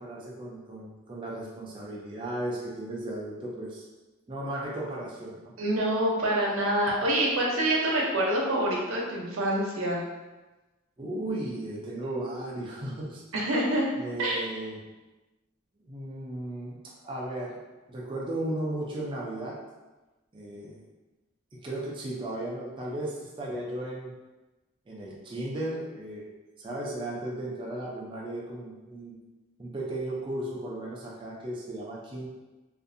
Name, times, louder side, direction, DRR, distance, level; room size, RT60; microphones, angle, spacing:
voice 1, 0.0-3.9 4.3-5.5 11.0-13.2 14.0-14.8 15.8-16.8 17.0-17.6 17.9-19.6 20.3-20.8 21.5-24.1 24.9-26.3 26.6-29.2 29.6-32.3, right 1 dB, 25° right, -4 dB, 0.4 m, -35 dB
voice 2, 5.6-10.0 13.3-13.9 14.2-14.4, right 1 dB, 90° right, -3 dB, 0.6 m, -26 dB
2.5 x 2.4 x 2.5 m, 1.1 s
head